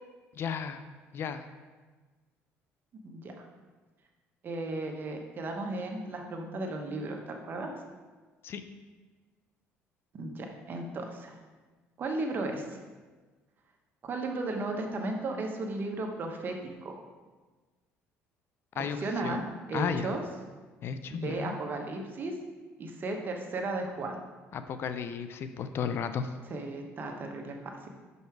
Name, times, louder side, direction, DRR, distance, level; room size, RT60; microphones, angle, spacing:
voice 1, 0.4-0.8 1.1-1.4 8.4-8.6 18.8-19.0 19.2-19.4 19.7-20.1 20.8-21.6 24.5-26.3, left 7 dB, 50° left, 10 dB, 0.5 m, -33 dB
voice 2, 4.4-7.8 10.1-11.4 12.0-12.7 14.0-16.9 19.0-19.4 19.7-20.2 21.1-22.3 22.8-24.2 26.5-27.9, right 2 dB, 40° right, 2 dB, 1.1 m, -35 dB
5.8 x 5.4 x 4.6 m, 1.3 s
cardioid pair, 100°, 5 cm